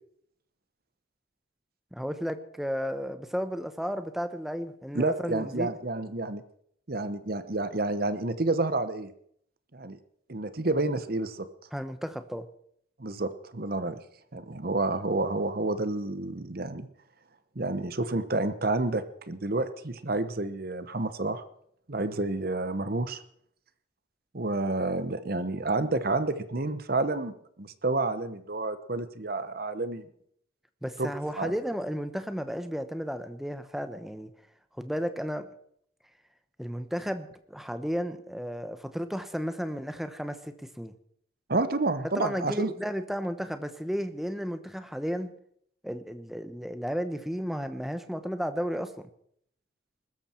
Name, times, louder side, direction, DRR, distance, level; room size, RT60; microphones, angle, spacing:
voice 1, 1.9-5.7 11.7-12.5 30.8-34.3 34.8-35.5 36.6-40.9 42.0-45.3 45.8-48.9, equal, ahead, 9 dB, 0.9 m, -33 dB
voice 2, 4.9-6.4 6.9-9.1 9.7-10.0 10.3-11.5 13.0-14.0 14.3-16.9 17.6-21.4 21.9-23.2 24.3-30.1 31.0-31.1 31.4-31.5 41.5-42.7, right 2 dB, 45° right, 12 dB, 1.0 m, -29 dB
20.5 x 13.5 x 4.5 m, 0.67 s
head